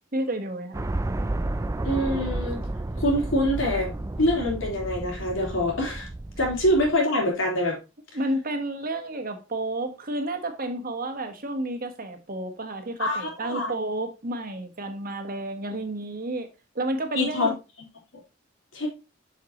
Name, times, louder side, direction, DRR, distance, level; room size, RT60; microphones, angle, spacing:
voice 1, 0.1-0.8 8.1-16.5 16.7-17.6, right 1 dB, 45° right, 1.3 m, -31 dB
sound 1, 0.7-7.0, right 2 dB, 15° right, 0.3 m, -31 dB
voice 2, 1.8-2.6 2.9-3.9 4.2-6.1 6.4-7.8 13.0-13.7 17.1-17.5 18.7-18.9, left 1 dB, 80° left, 3.5 m, -25 dB
7.1 x 6.4 x 3.0 m
head